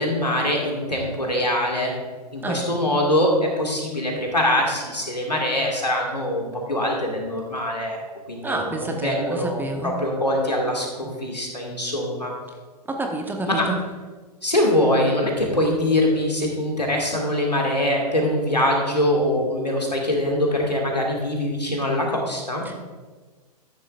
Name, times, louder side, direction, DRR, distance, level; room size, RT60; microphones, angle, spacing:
voice 1, 0.0-1.9 2.3-8.0 8.3-9.6 9.8-12.3 13.6-13.7 14.4-22.6, left 1 dB, 85° left, -1 dB, 2.2 m, -23 dB
voice 2, 8.4-9.9 11.0-11.2 12.9-13.8 22.6-22.8, right 2 dB, 10° right, 3 dB, 1.1 m, -28 dB
13.0 x 10.5 x 2.5 m, 1.4 s
figure-of-eight pair, 100°, 21 cm